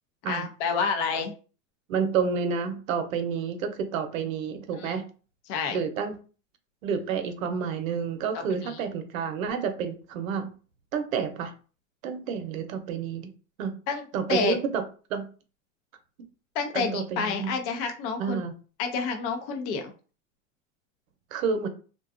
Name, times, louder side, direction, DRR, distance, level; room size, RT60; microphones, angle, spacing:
voice 1, 0.3-1.3 4.8-5.0 5.5-5.8 8.3-8.8 13.9-14.0 14.3-14.6 16.6-18.4 18.8-19.8, left 5 dB, 50° left, 0.6 m, -29 dB
voice 2, 1.9-5.0 5.7-6.1 6.8-10.5 10.9-11.5 12.0-13.3 13.6-13.8 14.1-14.8 15.1-15.3 16.7-17.5 18.2-18.5 21.3-21.7, right 6 dB, 85° right, 0.7 m, -29 dB
2.5 x 2.2 x 2.4 m
supercardioid pair, 125°, 39 cm